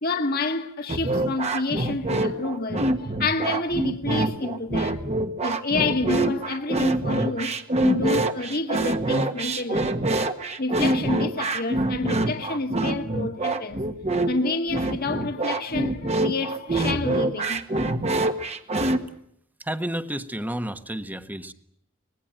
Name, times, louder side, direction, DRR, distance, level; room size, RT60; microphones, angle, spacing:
voice 1, 0.0-5.0 5.4-7.5 7.8-9.9 10.6-13.8 14.2-17.6, left 3 dB, 50° left, 1.8 m, -28 dB
sound 1, 0.9-19.0, right 2 dB, 35° right, 1.5 m, -25 dB
voice 2, 19.6-21.5, right 1 dB, 10° right, 1.3 m, -31 dB
24.5 x 19.5 x 9.0 m
head